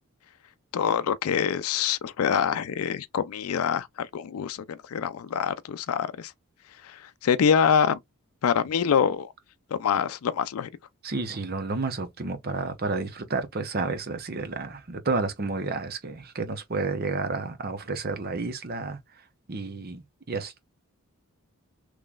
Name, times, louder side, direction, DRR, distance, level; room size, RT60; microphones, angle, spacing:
voice 1, 0.7-6.3 6.8-8.0 8.4-9.3 9.7-10.7, left 7 dB, 90° left, 0.4 m, -25 dB
voice 2, 11.0-19.2 19.5-20.5, right 3 dB, 45° right, 0.8 m, -31 dB
3.7 x 3.1 x 2.4 m
head